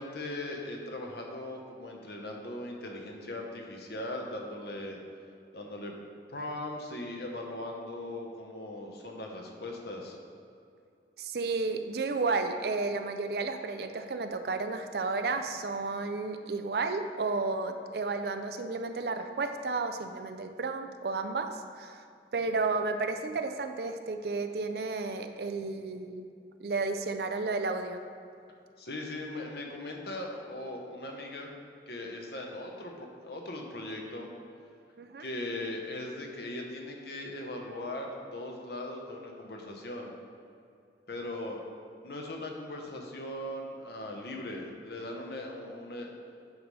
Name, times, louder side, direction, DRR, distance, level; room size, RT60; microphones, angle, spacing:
voice 1, 0.0-5.0 5.5-5.9 6.3-10.2 28.8-31.6 31.9-34.3 35.2-40.1 41.1-41.6 42.0-46.1, left 1 dB, 65° left, 1 dB, 1.0 m, -39 dB
voice 2, 11.2-22.0 22.3-26.3 26.6-28.0 35.0-35.3, right 3 dB, 60° right, 7 dB, 0.4 m, -32 dB
8.7 x 3.2 x 5.4 m, 2.5 s
head